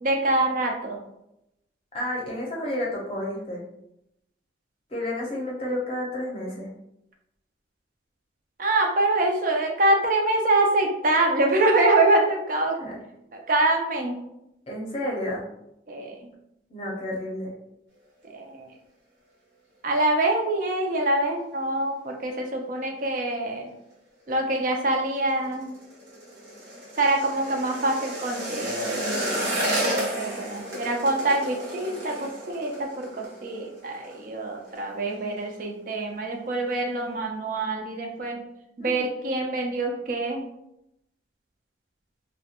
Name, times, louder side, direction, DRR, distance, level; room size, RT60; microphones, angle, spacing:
voice 1, 0.0-1.0 8.6-12.8 13.3-14.2 15.9-16.3 18.3-18.7 19.8-23.7 24.3-25.7 27.0-38.4 38.8-40.4, right 2 dB, 45° right, 2 dB, 0.4 m, -25 dB
voice 2, 1.9-3.6 4.9-6.7 12.8-13.0 14.7-15.4 16.7-17.5 38.8-38.9, left 1 dB, 30° left, -3 dB, 0.6 m, -31 dB
sound 1, 25.2-34.2 34.5-34.8 35.1-35.6 36.0-36.1, equal, 75° right, 0.9 m, -32 dB
2.3 x 2.1 x 2.8 m, 0.83 s
head